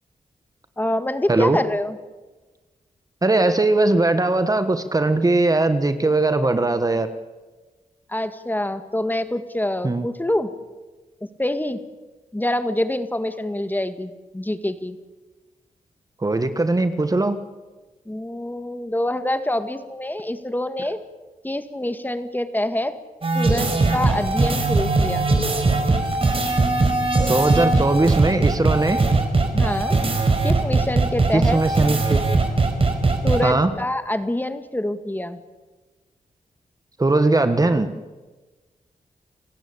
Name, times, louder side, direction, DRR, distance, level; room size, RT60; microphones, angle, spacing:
voice 1, 0.8-2.0 8.1-10.5 11.4-11.8 12.3-15.0 18.1-21.0 21.4-22.9 23.3-25.3 29.5-30.0 30.4-31.6 33.2-35.4, left 1 dB, 15° left, 9 dB, 1.9 m, -26 dB
voice 2, 3.2-7.1 9.8-10.1 16.2-17.4 27.3-29.0 31.3-32.2 33.4-33.7 37.0-37.9, right 2 dB, 25° right, 9 dB, 1.5 m, -19 dB
sound 1, 23.2-33.4, right 3 dB, 40° right, 4.7 m, -20 dB
30.0 x 16.5 x 8.8 m, 1.2 s
cardioid pair, 85°, 14 cm